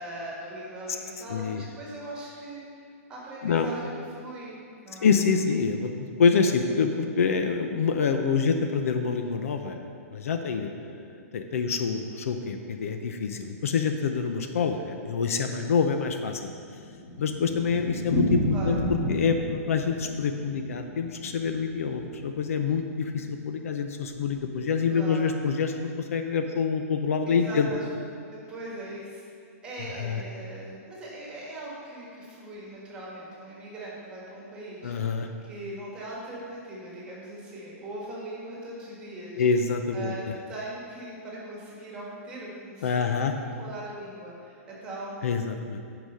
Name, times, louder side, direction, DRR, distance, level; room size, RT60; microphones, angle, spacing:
voice 1, 0.0-2.6 3.1-4.6 4.8-5.1 18.5-18.8 24.9-25.2 27.2-27.9 28.3-29.2 29.6-35.2 35.5-39.4 39.9-43.1 43.4-45.4, right 1 dB, 10° right, -5 dB, 1.6 m, -40 dB
voice 2, 1.3-1.6 3.4-3.7 5.0-9.8 10.1-16.5 17.2-27.7 30.0-30.2 34.8-35.3 39.3-40.1 42.8-43.3 45.2-45.8, left 5 dB, 65° left, 6 dB, 0.6 m, -26 dB
Thunder, 16.6-22.5 22.7-22.8 23.1-23.2 23.5-23.6 24.1-24.5, left 1 dB, 35° left, 1.8 m, -31 dB
10.0 x 4.9 x 5.5 m, 2.3 s
hypercardioid pair, 170°, 8 cm